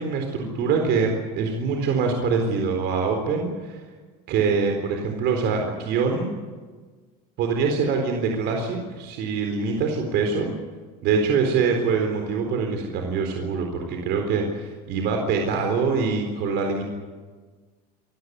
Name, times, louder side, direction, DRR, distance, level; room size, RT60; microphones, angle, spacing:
voice 1, 0.0-3.8 4.3-6.3 7.4-10.5 11.0-16.8, right 5 dB, 60° right, 3 dB, 4.1 m, -24 dB
26.5 x 15.0 x 9.8 m, 1.4 s
supercardioid pair, 100°, 20 cm